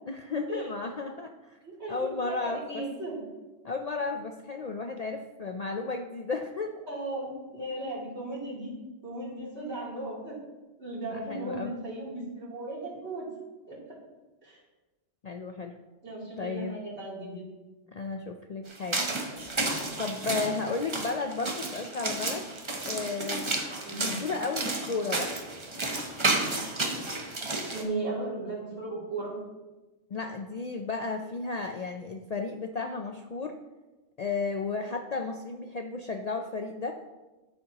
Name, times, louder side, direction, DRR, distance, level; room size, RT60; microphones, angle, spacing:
voice 1, 0.1-1.6 1.9-2.8 3.6-6.8 11.1-11.7 15.2-15.8 16.4-16.8 17.9-19.0 20.0-22.5 22.9-23.5 24.0-25.4 30.1-33.6 34.2-36.9, left 4 dB, 55° left, 5 dB, 0.4 m, -33 dB
voice 2, 1.6-3.2 6.9-8.7 9.0-10.4 10.8-13.3 13.7-13.8 14.4-14.6 16.0-17.5 23.8-24.2 27.7-29.3, right 2 dB, 75° right, -7 dB, 3.4 m, -36 dB
sound 1, 18.7-27.8, right 2 dB, 30° right, 0.9 m, -32 dB
12.0 x 6.8 x 2.9 m, 1.1 s
omnidirectional pair, 1.2 m